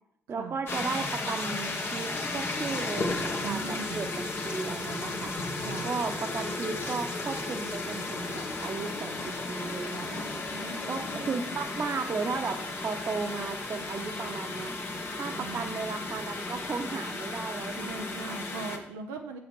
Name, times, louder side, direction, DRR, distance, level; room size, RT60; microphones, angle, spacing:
voice 1, 0.3-5.3 5.8-10.3 10.8-14.7 15.2-18.4, right 4 dB, 45° right, 7 dB, 1.1 m, -35 dB
sound 1, 0.7-18.8, left 2 dB, 45° left, 1.6 m, -34 dB
voice 2, 3.4-4.1 5.6-5.9 10.5-11.2 15.3-15.8 17.8-19.4, right 4 dB, 75° right, 3 dB, 0.6 m, -40 dB
6.9 x 6.3 x 6.2 m, 0.75 s
hypercardioid pair, 45°, 6 cm